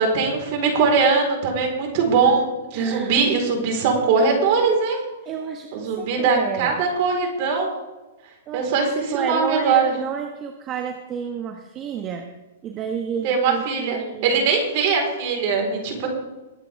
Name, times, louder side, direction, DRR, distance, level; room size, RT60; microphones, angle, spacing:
voice 1, 0.0-5.0 5.7-7.7 8.5-9.9 13.2-16.1, right 5 dB, 50° right, 1 dB, 4.4 m, -21 dB
voice 2, 2.7-3.2 5.3-6.8 8.5-12.2 12.6-14.5, right 7 dB, 30° right, 4 dB, 1.2 m, -31 dB
21.5 x 8.9 x 3.6 m, 1.1 s
hypercardioid pair, 135°, 0 cm